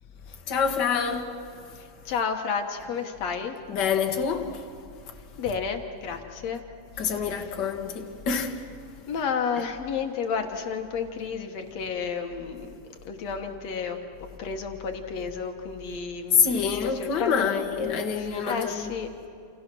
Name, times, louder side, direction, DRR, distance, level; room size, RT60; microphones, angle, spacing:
voice 1, 0.5-1.3 3.7-4.5 7.0-8.5 16.3-18.9, left 6 dB, 45° left, 1.6 m, -26 dB
voice 2, 1.8-3.6 5.4-6.6 7.0-7.1 7.4-7.5 9.1-12.7 13.1-17.6 18.1-19.1, left 6 dB, 60° left, 2.2 m, -32 dB
28.5 x 28.5 x 6.1 m
omnidirectional pair, 3.9 m